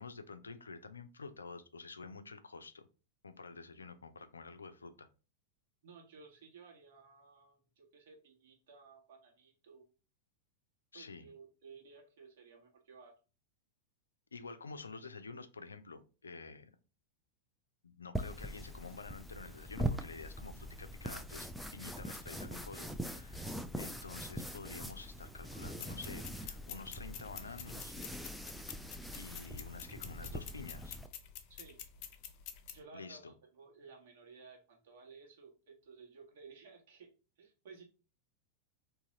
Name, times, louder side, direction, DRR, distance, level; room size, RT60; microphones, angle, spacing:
voice 1, 0.0-2.9 3.2-5.1 10.9-11.3 14.3-16.7 17.8-28.0 29.2-31.0 32.9-33.3, left 4 dB, 75° left, 10 dB, 0.4 m, -49 dB
voice 2, 5.8-9.9 10.9-13.1 31.5-31.8 32.7-37.1 37.4-37.8, right 5 dB, 55° right, 1 dB, 1.4 m, -56 dB
sound 1, 18.1-31.1, right 1 dB, ahead, 0.4 m, -42 dB
sound 2, 25.8-32.8, left 9 dB, 40° left, 0.7 m, -49 dB
4.0 x 2.7 x 3.7 m, 0.34 s
figure-of-eight pair, 90°, 0 cm